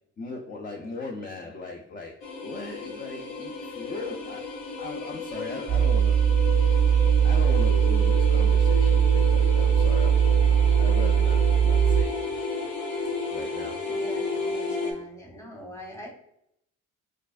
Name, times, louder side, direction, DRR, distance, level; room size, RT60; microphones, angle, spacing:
voice 1, 0.2-6.2 6.5-6.6 7.2-12.1 13.3-13.8, left 3 dB, 30° left, 1 dB, 0.5 m, -38 dB
sound 1, 2.2-14.9, left 3 dB, 70° left, 1.0 m, -32 dB
sound 2, 5.7-12.0, right 8 dB, 60° right, 0.5 m, -20 dB
voice 2, 13.8-16.1, equal, 10° left, 0 dB, 1.1 m, -43 dB
4.4 x 2.5 x 2.5 m, 0.76 s
cardioid pair, 90°, 30 cm